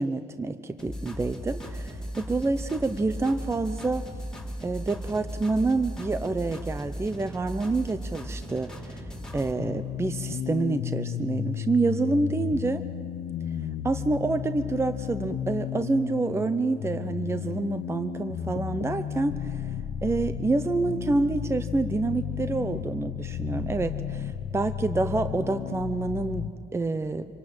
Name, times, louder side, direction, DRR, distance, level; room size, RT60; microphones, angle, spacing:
voice 1, 0.0-4.0 4.6-9.0 9.3-12.8 13.8-19.7 20.0-27.3, right 3 dB, 15° right, 11 dB, 0.7 m, -27 dB
sound 1, 0.8-9.5, equal, 5° left, 3.1 m, -37 dB
sound 2, 9.6-26.5, left 9 dB, 85° left, 1.1 m, -33 dB
26.0 x 19.5 x 8.8 m, 2.4 s
cardioid pair, 110°, 17 cm